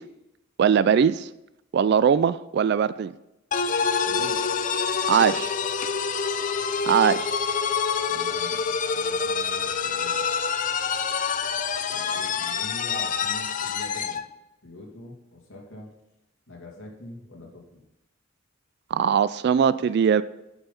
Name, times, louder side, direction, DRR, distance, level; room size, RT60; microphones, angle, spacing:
voice 1, 0.6-1.3 1.7-3.1 5.1-5.5 6.9-7.3 18.9-20.2, right 7 dB, 55° right, 16 dB, 0.3 m, -20 dB
sound 1, 3.5-14.2, left 6 dB, 40° left, 0.5 m, -26 dB
voice 2, 4.0-4.4 8.1-10.4 11.9-14.2 14.6-15.9 16.5-17.8, left 1 dB, 80° left, -1 dB, 2.5 m, -44 dB
9.7 x 5.5 x 5.9 m, 0.93 s
head